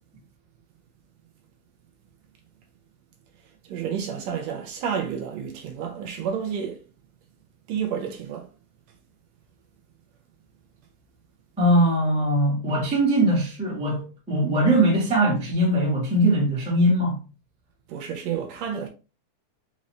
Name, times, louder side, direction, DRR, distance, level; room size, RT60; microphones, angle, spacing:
voice 1, 3.7-6.8 7.7-8.5 17.9-18.9, right 7 dB, 75° right, 1.7 m, -30 dB
voice 2, 11.6-17.2, right 1 dB, 5° right, 0.6 m, -21 dB
5.4 x 2.5 x 3.1 m
omnidirectional pair, 3.3 m